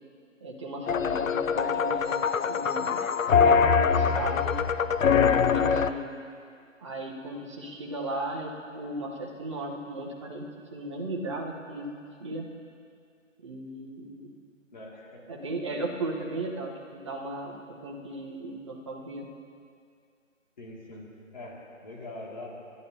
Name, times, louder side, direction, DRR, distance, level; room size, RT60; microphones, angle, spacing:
voice 1, 0.4-3.0 3.3-4.7 5.1-6.1 6.8-10.4 10.7-12.4 13.4-14.3 15.3-17.5 17.8-19.3, right 2 dB, 25° right, -1 dB, 1.0 m, -36 dB
sound 1, 0.9-5.9, left 6 dB, 80° left, 0.6 m, -23 dB
voice 2, 14.7-15.2 20.6-21.1 21.3-22.5, left 2 dB, 35° left, -4 dB, 2.4 m, -42 dB
28.5 x 11.0 x 2.8 m, 2.3 s
figure-of-eight pair, 160°, 39 cm